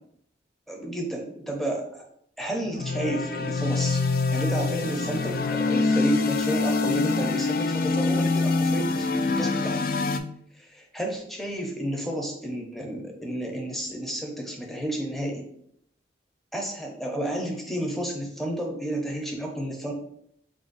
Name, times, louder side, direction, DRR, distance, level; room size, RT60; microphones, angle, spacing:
voice 1, 0.7-2.0 2.4-4.0 4.3-9.8 10.7-15.5 16.5-19.9, right 1 dB, ahead, 0 dB, 0.6 m, -31 dB
sound 1, 2.6-10.2, left 3 dB, 50° left, 0.3 m, -25 dB
4.0 x 2.5 x 3.9 m, 0.71 s
head